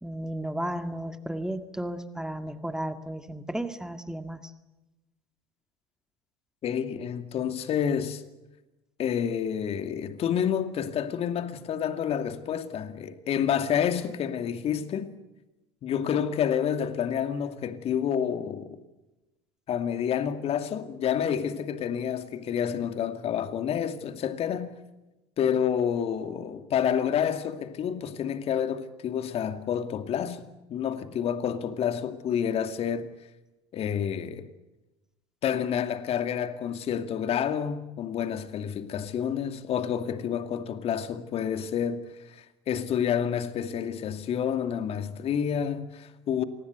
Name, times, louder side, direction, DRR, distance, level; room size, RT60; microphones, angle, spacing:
voice 1, 0.0-4.5, right 1 dB, 5° right, 2.0 m, -34 dB
voice 2, 6.6-8.2 9.0-15.1 15.8-18.7 19.7-24.8 25.4-33.1 33.7-34.5 35.4-46.4, left 8 dB, 45° left, 2.4 m, -29 dB
27.5 x 19.5 x 8.1 m
hypercardioid pair, 75°, 14 cm